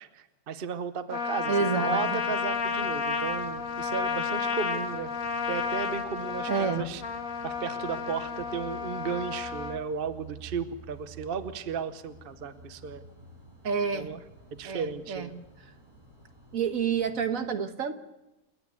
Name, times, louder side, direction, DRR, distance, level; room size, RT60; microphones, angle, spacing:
voice 1, 0.0-1.5 1.8-5.1 5.5-7.0 7.4-13.0 13.9-14.2 14.5-15.3, right 6 dB, 45° right, 12 dB, 1.0 m, -35 dB
Trumpet, 1.1-9.8, left 6 dB, 65° left, 1.5 m, -31 dB
voice 2, 1.5-2.2 6.5-6.8 13.6-14.1 14.6-15.3 16.5-17.9, right 6 dB, 65° right, 9 dB, 1.6 m, -28 dB
sound 1, 2.5-17.3, right 3 dB, 85° right, 4.9 m, -52 dB
29.0 x 9.7 x 9.5 m, 0.96 s
omnidirectional pair, 1.6 m